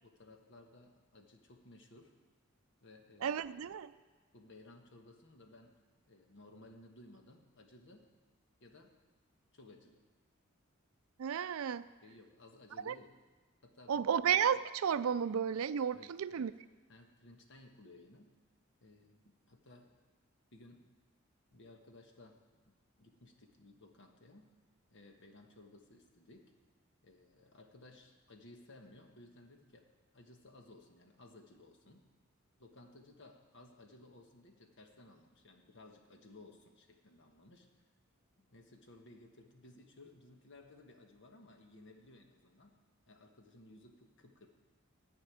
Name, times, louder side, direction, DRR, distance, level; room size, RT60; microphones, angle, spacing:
voice 1, 0.0-2.2 2.8-3.4 4.3-5.8 6.1-8.1 8.6-8.9 9.5-10.0 12.0-13.2 13.6-14.0 15.9-16.6 16.9-18.4 18.8-20.0 20.5-20.9 21.5-22.4 22.6-24.5 24.9-26.5 27.0-29.9 30.1-32.1 32.6-37.7 38.4-42.8 43.1-44.5, left 2 dB, 60° left, 4 dB, 1.3 m, -58 dB
voice 2, 3.2-3.9 11.2-11.8 12.9-13.0 13.9-16.5, right 8 dB, 75° right, 15 dB, 0.4 m, -32 dB
13.5 x 5.2 x 9.1 m, 1.3 s
head